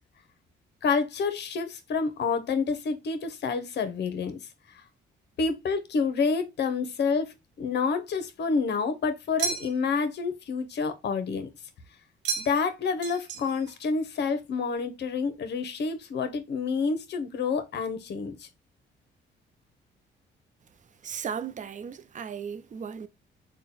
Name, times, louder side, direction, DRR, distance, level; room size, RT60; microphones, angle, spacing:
voice 1, 0.8-4.4 4.7-4.8 5.4-7.3 7.6-11.5 12.4-18.5, left 5 dB, 60° left, 0.8 m, -28 dB
sound 1, 9.4-10.0 12.2-12.7 13.0-13.8, right 6 dB, 85° right, 0.9 m, -33 dB
voice 2, 21.0-23.1, right 7 dB, 40° right, 0.5 m, -36 dB
3.8 x 2.2 x 4.0 m
cardioid pair, 90°, 20 cm